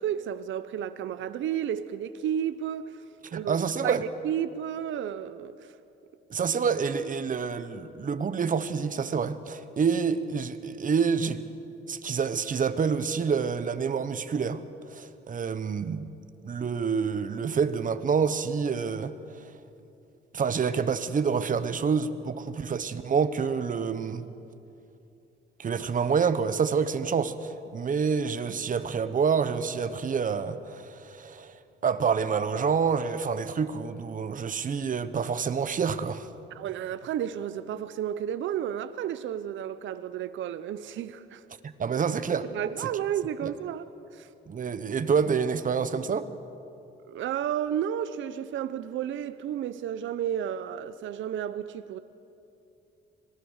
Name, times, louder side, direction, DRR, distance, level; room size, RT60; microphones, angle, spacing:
voice 1, 0.0-3.0 3.3-3.6 3.8-5.5 36.5-41.4 42.5-43.9 44.1-44.3 47.1-52.0, right 10 dB, 75° right, 0.8 m, -32 dB
voice 2, 3.2-4.0 6.3-11.4 11.9-14.6 14.9-16.1 16.4-19.4 20.3-24.2 25.6-31.5 31.8-36.3 41.6-42.5 43.4-43.5 44.5-46.3, right 6 dB, 40° right, 1.2 m, -27 dB
25.5 x 18.5 x 6.6 m
cardioid pair, 90°, 20 cm